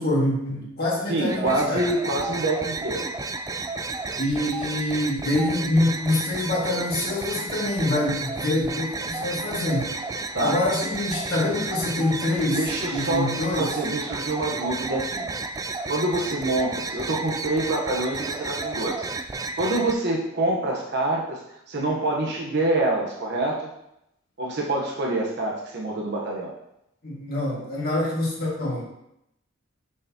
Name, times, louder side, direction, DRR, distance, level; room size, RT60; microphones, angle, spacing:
voice 1, 0.0-1.8 4.2-13.8 27.0-28.8, left 1 dB, 50° left, -5 dB, 2.0 m, -26 dB
voice 2, 1.1-3.1 10.3-10.6 12.5-15.3 15.9-19.1 19.6-21.4 21.7-23.7 24.4-26.5, right 2 dB, 55° right, -2 dB, 1.1 m, -26 dB
sound 1, 1.2-19.9, right 3 dB, 15° right, 0.3 m, -32 dB
6.7 x 6.2 x 2.9 m, 0.81 s
head